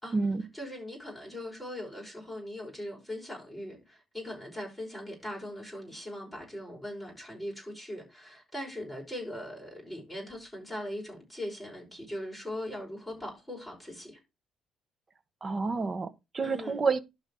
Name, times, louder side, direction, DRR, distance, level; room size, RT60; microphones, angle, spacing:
voice 1, 0.5-14.2 16.4-16.8, left 1 dB, ahead, 5.6 m, -40 dB
voice 2, 15.4-17.0, right 4 dB, 25° right, 1.0 m, -29 dB
11.5 x 4.0 x 4.8 m
cardioid pair, 130°, 0 cm